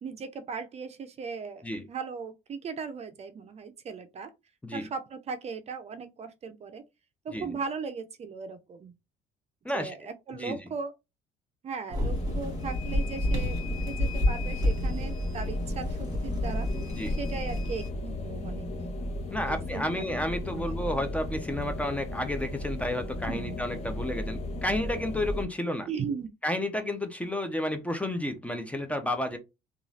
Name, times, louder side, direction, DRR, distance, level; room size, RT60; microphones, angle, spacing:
voice 1, 0.0-4.3 4.7-6.8 7.2-8.9 9.7-10.9 11.6-16.7 17.2-19.0 19.5-20.1 20.6-20.7 23.3-23.6 25.9-26.3, right 5 dB, 40° right, 0.5 m, -38 dB
voice 2, 9.6-10.7 16.9-17.2 19.3-25.9 26.4-29.4, left 1 dB, 10° left, 0.5 m, -31 dB
sound 1, 11.9-17.9, left 1 dB, 20° right, 1.5 m, -30 dB
sound 2, 12.0-25.5, left 1 dB, 40° left, 0.9 m, -35 dB
3.0 x 2.4 x 2.6 m
cardioid pair, 110°, 17 cm